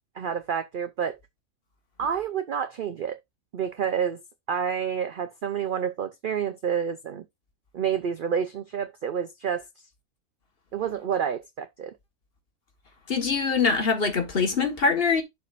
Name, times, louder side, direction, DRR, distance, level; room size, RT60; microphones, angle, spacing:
voice 1, 0.2-1.2 2.0-3.2 3.5-4.2 4.5-7.2 7.7-9.6 10.7-11.9, right 8 dB, 75° right, 0.4 m, -29 dB
voice 2, 13.1-15.2, left 5 dB, 40° left, 1.6 m, -23 dB
11.5 x 4.8 x 2.5 m
omnidirectional pair, 1.5 m